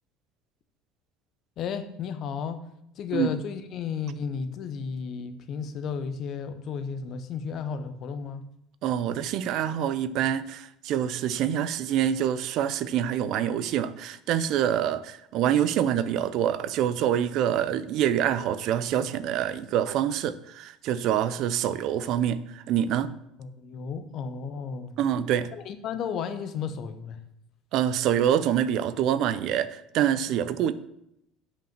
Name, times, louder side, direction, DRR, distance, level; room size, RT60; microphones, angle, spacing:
voice 1, 1.6-2.6 3.0-8.5 23.4-25.0 25.5-27.2 30.1-30.3, left 6 dB, 40° left, 10 dB, 0.8 m, -33 dB
voice 2, 8.8-23.1 25.0-25.5 27.7-30.7, right 10 dB, 50° right, 14 dB, 0.5 m, -26 dB
8.4 x 5.2 x 7.3 m, 0.78 s
cardioid pair, 170°, 0 cm